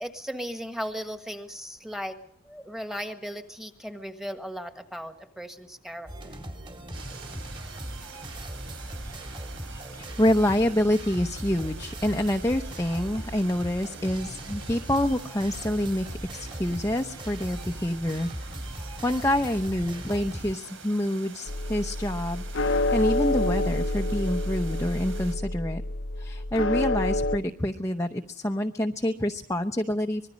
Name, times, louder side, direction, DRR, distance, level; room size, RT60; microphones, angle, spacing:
voice 1, 0.0-2.2 2.4-6.4, equal, ahead, 7 dB, 1.6 m, -37 dB
sound 1, 6.1-20.6, right 1 dB, 25° right, 2.5 m, -39 dB
sound 2, 6.9-25.4, right 5 dB, 70° right, 3.5 m, -47 dB
voice 2, 10.0-25.8 26.2-30.3, left 1 dB, 15° left, 4 dB, 0.7 m, -27 dB
sound 3, 21.5-27.4, left 1 dB, 65° left, 0.8 m, -28 dB
25.0 x 21.0 x 5.2 m, 0.71 s
head